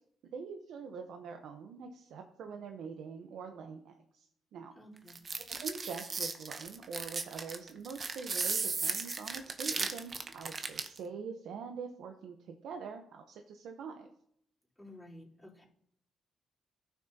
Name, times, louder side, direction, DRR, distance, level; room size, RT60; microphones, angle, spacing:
voice 1, 0.3-4.3 4.5-4.7 5.5-14.1, right 5 dB, 75° right, 4 dB, 0.9 m, -44 dB
voice 2, 4.8-5.2 14.8-15.6, left 1 dB, 10° left, -6 dB, 3.7 m, -52 dB
sound 1, 5.1-11.0, right 4 dB, 40° right, 0.9 m, -36 dB
14.0 x 6.1 x 2.8 m, 0.70 s
cardioid pair, 90°, 0 cm